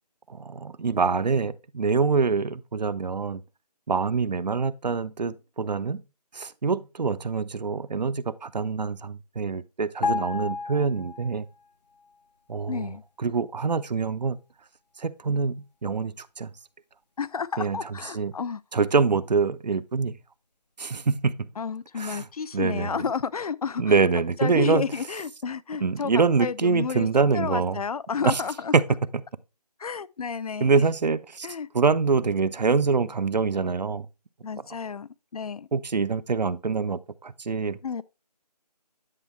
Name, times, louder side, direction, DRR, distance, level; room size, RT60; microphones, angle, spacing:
voice 1, 0.3-3.4 3.9-6.0 6.3-11.5 12.5-12.9 13.2-14.4 15.0-16.5 17.6-18.3 18.7-20.2 20.8-21.5 22.0-22.3 22.5-23.0 23.8-24.9 25.8-27.8 28.2-28.4 28.7-28.8 30.6-31.5 31.7-34.1 35.7-37.8, right 4 dB, 80° right, 0.6 m, -25 dB
sound 1, 10.0-11.7 11.9-12.1, left 4 dB, 85° left, 1.0 m, -31 dB
voice 2, 12.7-13.0 17.2-18.6 21.6-24.0 24.4-26.1 26.4-27.1 27.3-28.7 29.8-30.8 31.4-31.7 34.4-35.7 37.8-38.0, left 6 dB, 60° left, 0.4 m, -31 dB
9.7 x 4.7 x 3.1 m
figure-of-eight pair, 160°, 21 cm